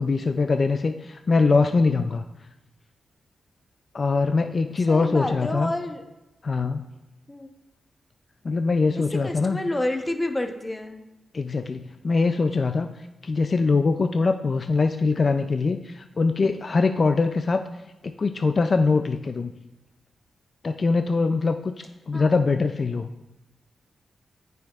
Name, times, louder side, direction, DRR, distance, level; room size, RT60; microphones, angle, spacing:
voice 1, 0.0-2.2 3.9-5.7 6.4-6.9 8.4-9.6 11.3-12.9 13.2-17.6 18.0-19.5 20.6-21.7 22.1-23.1, left 4 dB, 50° left, 7 dB, 0.3 m, -22 dB
voice 2, 4.8-6.0 7.3-7.5 8.9-11.1 22.1-22.3, left 1 dB, 15° left, 5 dB, 0.8 m, -29 dB
8.8 x 5.6 x 2.4 m, 0.99 s
cardioid pair, 60°, 0 cm